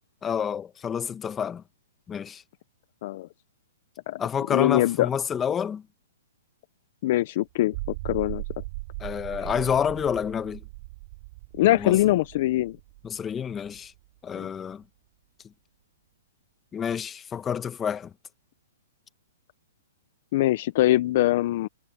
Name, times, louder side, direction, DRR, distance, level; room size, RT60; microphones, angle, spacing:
voice 1, 0.2-1.6 2.1-2.4 4.2-5.8 9.0-10.6 11.7-12.0 13.0-13.9 14.2-14.8 16.7-18.1, left 8 dB, 15° left, 1.2 m, -29 dB
voice 2, 4.5-5.1 7.0-7.8 8.0-8.4 11.6-12.8 14.3-14.5 20.3-21.7, left 15 dB, 45° left, 0.5 m, -22 dB
sound 1, 7.6-14.1, right 23 dB, 40° right, 6.9 m, -39 dB
hypercardioid pair, 155°, 0 cm